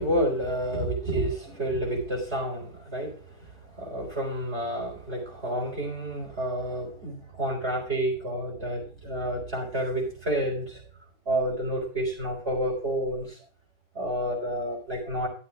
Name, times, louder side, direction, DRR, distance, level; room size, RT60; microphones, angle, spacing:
voice 1, 0.0-3.2 3.8-10.8 11.3-13.4 13.9-15.3, right 1 dB, 45° right, -3 dB, 4.6 m, -29 dB
14.5 x 12.0 x 2.4 m, 0.38 s
omnidirectional pair, 1.5 m